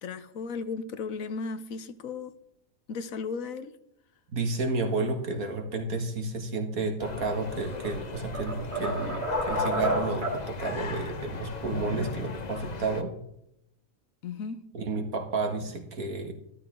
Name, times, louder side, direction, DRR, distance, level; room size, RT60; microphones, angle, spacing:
voice 1, 0.0-2.3 2.9-3.7 14.2-14.6, left 4 dB, 70° left, 12 dB, 1.3 m, -35 dB
voice 2, 4.3-13.1 14.7-16.3, right 3 dB, 75° right, 4 dB, 2.1 m, -31 dB
sound 1, 7.0-13.0, left 4 dB, 35° left, 0.9 m, -35 dB
sound 2, 7.5-8.0 8.3-10.5, right 2 dB, 45° right, 2.9 m, -32 dB
13.0 x 12.5 x 3.7 m, 0.78 s
omnidirectional pair, 1.5 m